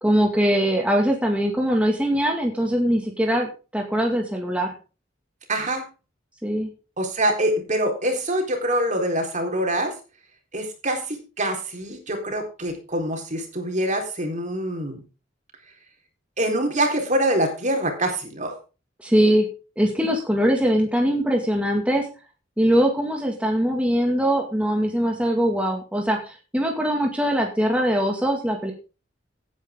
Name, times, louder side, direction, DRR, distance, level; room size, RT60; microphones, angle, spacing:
voice 1, 0.0-4.7 6.4-6.7 19.0-19.5 19.8-22.1 22.6-28.7, equal, 5° right, 1 dB, 2.1 m, -22 dB
voice 2, 5.5-5.9 7.0-9.9 10.5-15.0 16.4-18.5, right 1 dB, 40° right, 3 dB, 3.9 m, -25 dB
16.5 x 9.4 x 3.7 m, 0.33 s
head